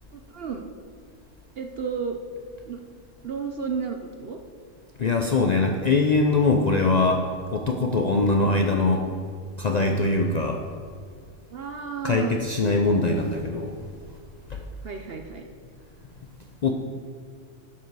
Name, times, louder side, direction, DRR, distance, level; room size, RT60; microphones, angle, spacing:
voice 1, 0.1-0.7 1.6-2.2 2.7-2.8 3.2-4.4 8.2-8.3 11.5-12.4 14.8-15.4, right 6 dB, 55° right, 4 dB, 0.7 m, -32 dB
voice 2, 5.0-9.1 9.6-10.6 12.0-13.8 14.5-14.6 16.6-16.7, left 3 dB, 85° left, 3 dB, 0.3 m, -22 dB
11.0 x 7.4 x 4.7 m, 2.1 s
omnidirectional pair, 1.5 m